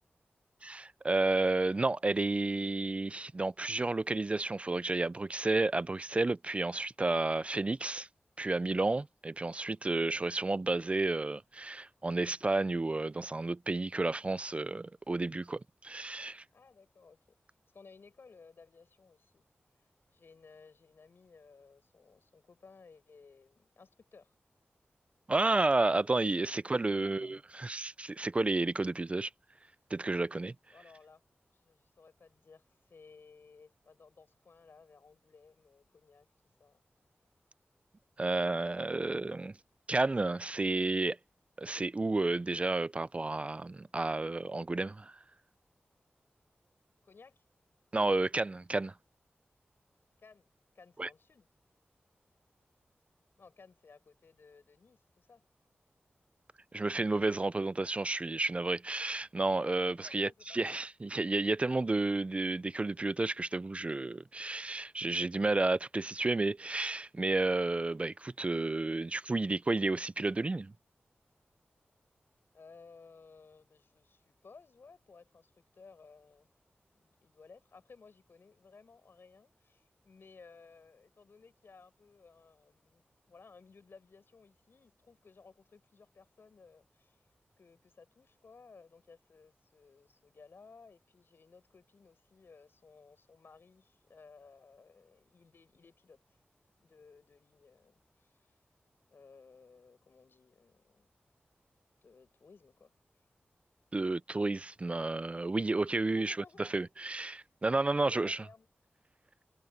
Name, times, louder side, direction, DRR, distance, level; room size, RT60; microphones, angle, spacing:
voice 1, 0.6-8.1 8.4-16.4 25.3-29.3 29.9-30.5 38.2-39.5 39.9-41.2 41.6-45.2 47.9-48.9 51.0-51.1 56.7-70.7 103.9-108.4, right 2 dB, 30° right, 0.4 m, -31 dB
voice 2, 16.5-17.2 17.7-19.4 20.1-24.3 26.6-27.3 30.7-31.2 31.5-36.3 36.6-36.8 47.0-47.4 50.2-51.5 53.4-55.4 59.9-60.8 72.5-76.5 76.9-83.0 83.3-87.2 87.6-96.4 96.8-98.5 99.1-101.1 102.0-102.9 106.0-106.7 108.0-108.7, left 4 dB, 70° left, 6.7 m, -58 dB
wide cardioid pair, 75°, 4 cm